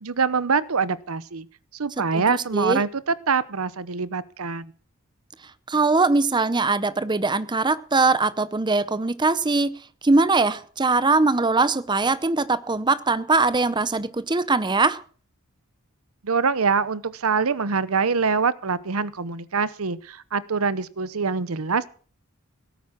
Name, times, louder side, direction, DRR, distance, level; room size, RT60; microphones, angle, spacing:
voice 1, 0.0-1.5 1.7-4.7 16.2-21.9, right 5 dB, 85° right, 0.8 m, -24 dB
voice 2, 2.1-2.8 5.7-15.0, right 3 dB, 20° right, 0.7 m, -21 dB
17.0 x 9.3 x 6.0 m
head